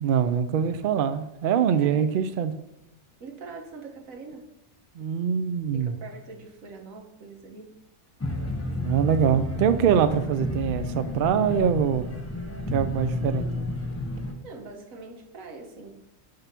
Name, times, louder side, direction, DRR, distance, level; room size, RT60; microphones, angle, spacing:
voice 1, 0.0-2.5 4.9-6.0 8.8-12.1 12.7-13.5, right 8 dB, 60° right, 11 dB, 0.6 m, -24 dB
voice 2, 1.7-2.1 3.2-4.5 5.7-7.7 14.4-15.9, right 3 dB, 90° right, 2 dB, 1.6 m, -43 dB
sound 1, 8.2-14.3, left 1 dB, 10° left, 1.0 m, -31 dB
10.5 x 3.4 x 5.8 m, 0.86 s
omnidirectional pair, 1.4 m